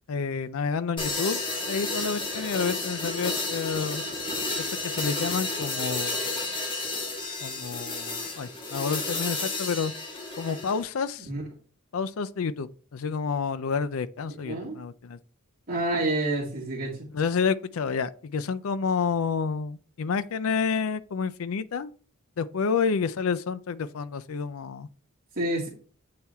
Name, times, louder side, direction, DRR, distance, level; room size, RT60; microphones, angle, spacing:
voice 1, 0.1-1.4 1.7-4.0 4.8-6.1 7.4-9.9 10.4-11.3 11.9-15.2 17.1-21.9 22.4-24.9, left 5 dB, 85° left, 0.5 m, -29 dB
sound 1, 1.0-10.8, left 3 dB, 25° left, 1.7 m, -31 dB
voice 2, 14.4-14.8 15.7-16.9 25.4-25.7, right 2 dB, 45° right, 2.3 m, -28 dB
8.6 x 4.3 x 3.5 m
head